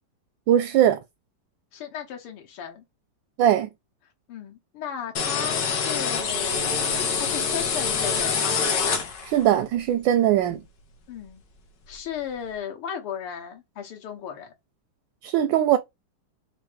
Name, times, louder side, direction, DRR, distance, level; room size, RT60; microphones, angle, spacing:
voice 1, 0.5-1.0 3.4-3.7 9.2-10.6 15.2-15.8, right 11 dB, 75° right, 1.2 m, -20 dB
voice 2, 1.7-2.8 4.3-8.6 11.1-11.4 11.9-14.5, left 8 dB, 85° left, 2.1 m, -35 dB
sound 1, 5.1-9.5, left 6 dB, 60° left, 1.6 m, -25 dB
4.4 x 2.6 x 4.5 m
omnidirectional pair, 2.4 m